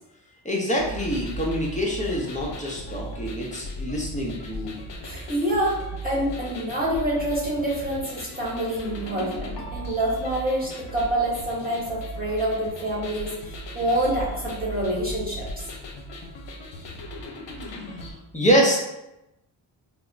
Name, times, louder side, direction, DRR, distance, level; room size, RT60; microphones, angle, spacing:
voice 1, 0.4-4.8 18.3-18.8, equal, 15° left, -3 dB, 0.8 m, -25 dB
sound 1, 0.8-18.1, right 1 dB, 65° left, 0.7 m, -37 dB
voice 2, 5.0-15.4, right 1 dB, 20° right, -6 dB, 1.1 m, -27 dB
3.4 x 2.1 x 2.5 m, 0.90 s
cardioid pair, 65°, 45 cm